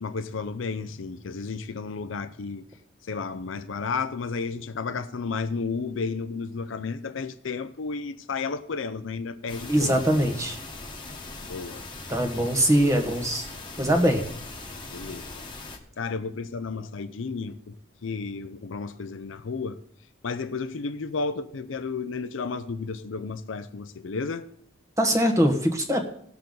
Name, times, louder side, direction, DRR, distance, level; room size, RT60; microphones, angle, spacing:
voice 1, 0.0-2.6 3.1-9.9 11.4-11.8 14.9-15.3 16.0-17.7 18.0-19.8 20.2-24.5, left 4 dB, 75° left, 0.6 m, -32 dB
sound 1, 9.5-15.8, left 3 dB, 25° left, 1.4 m, -40 dB
voice 2, 9.7-10.6 12.1-13.5 13.8-14.2 25.0-26.0, equal, 15° right, 1.3 m, -22 dB
17.0 x 6.8 x 3.9 m
head